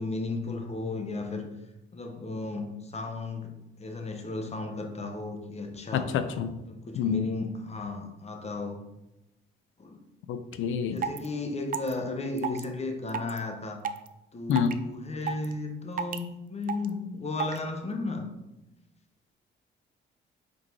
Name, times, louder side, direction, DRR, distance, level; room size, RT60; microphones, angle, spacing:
voice 1, 0.0-1.5 1.9-6.1 6.6-8.8 9.8-10.0 10.9-13.8 14.3-18.3, left 3 dB, 30° left, 4 dB, 1.1 m, -34 dB
voice 2, 5.9-6.5 7.0-7.2 10.3-11.0 14.5-14.7, left 7 dB, 80° left, 10 dB, 0.6 m, -27 dB
sound 1, 10.5-10.6 11.0-11.3 11.7-11.9 12.4-12.6 13.1-13.4 13.8-14.1 14.5-14.7 15.3-15.5 16.0-16.2 16.7-16.9 17.4-17.6, right 7 dB, 45° right, 0.5 m, -31 dB
5.3 x 4.2 x 4.6 m, 0.93 s
cardioid pair, 90°, 20 cm